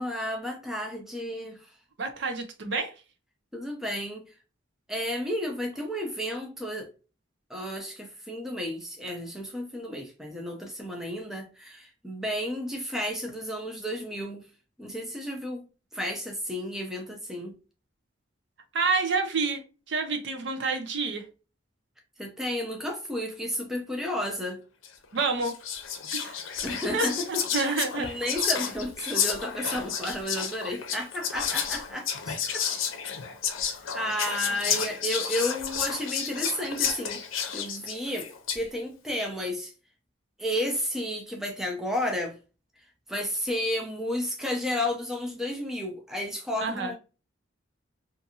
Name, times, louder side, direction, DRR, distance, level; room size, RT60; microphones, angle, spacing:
voice 1, 0.0-1.6 3.5-4.2 4.9-6.9 7.5-14.4 14.8-15.7 15.9-17.5 22.2-24.6 26.6-32.4 33.9-37.2 37.5-39.7 40.4-42.4 43.1-47.0, left 1 dB, ahead, 0.4 m, -32 dB
voice 2, 2.0-2.9 18.7-19.6 19.9-21.2 25.1-25.6 26.1-26.6 26.9-28.1 46.6-46.9, right 4 dB, 65° right, 0.5 m, -28 dB
Whispering, 24.8-25.0 25.4-38.7, left 7 dB, 85° left, 0.5 m, -31 dB
2.6 x 2.5 x 2.7 m
head